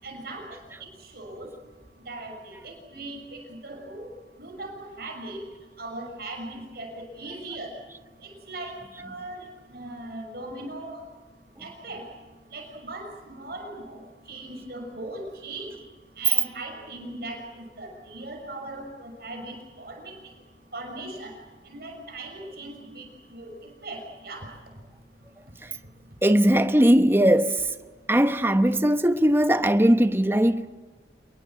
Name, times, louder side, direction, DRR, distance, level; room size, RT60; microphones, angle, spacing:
voice 1, 0.0-0.6 1.0-1.5 2.0-4.1 4.4-5.4 5.8-7.8 8.2-11.0 11.6-12.0 12.5-15.7 16.2-20.2 20.7-21.3 21.6-23.5 23.8-24.5, right 2 dB, 55° right, 6.4 m, -39 dB
voice 2, 26.2-27.7 28.1-30.7, equal, 15° right, 0.9 m, -19 dB
28.0 x 22.5 x 7.7 m
head